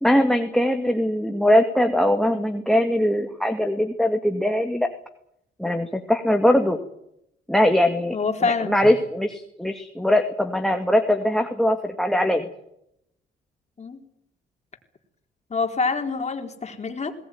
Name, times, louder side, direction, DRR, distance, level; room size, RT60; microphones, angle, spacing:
voice 1, 0.0-4.9 5.6-6.8 7.5-12.4, left 1 dB, ahead, 5 dB, 2.2 m, -21 dB
voice 2, 8.1-8.8 13.8-14.0 15.5-17.1, left 4 dB, 35° left, 4 dB, 4.1 m, -26 dB
21.0 x 19.0 x 9.6 m, 0.78 s
cardioid pair, 90°, 20 cm